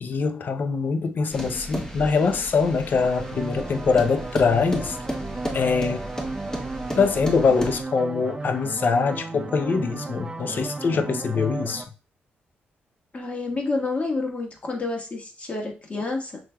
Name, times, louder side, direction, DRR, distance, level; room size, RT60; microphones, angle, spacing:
voice 1, 0.0-5.0 5.5-6.1 7.0-11.8, left 5 dB, 55° left, 0.5 m, -23 dB
sound 1, 1.3-7.8, equal, 15° left, 1.0 m, -34 dB
sound 2, 2.9-11.8, right 3 dB, 25° right, 0.6 m, -34 dB
voice 2, 13.1-16.4, left 3 dB, 35° left, 1.3 m, -29 dB
5.9 x 3.3 x 2.2 m
cardioid pair, 85°, 4 cm